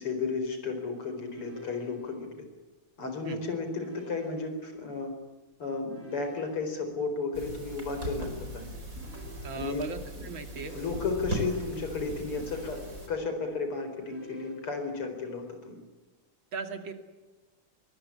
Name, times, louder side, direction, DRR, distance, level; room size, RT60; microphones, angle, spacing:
voice 1, 0.0-2.5 3.0-5.1 5.6-8.7 9.5-9.8 10.7-12.8 13.1-15.8, left 4 dB, 90° left, 6 dB, 5.4 m, -33 dB
sound 1, 1.3-2.3 3.8-4.8 5.9-6.9 9.0-10.0 10.5-11.5 12.4-13.4 14.0-15.0, left 1 dB, 5° left, 7.8 m, -49 dB
sound 2, 7.3-13.1, right 1 dB, 35° right, 5.1 m, -39 dB
voice 2, 9.4-10.8 16.5-16.9, right 4 dB, 65° right, 7 dB, 3.0 m, -38 dB
23.5 x 20.0 x 8.7 m, 1.2 s
omnidirectional pair, 2.4 m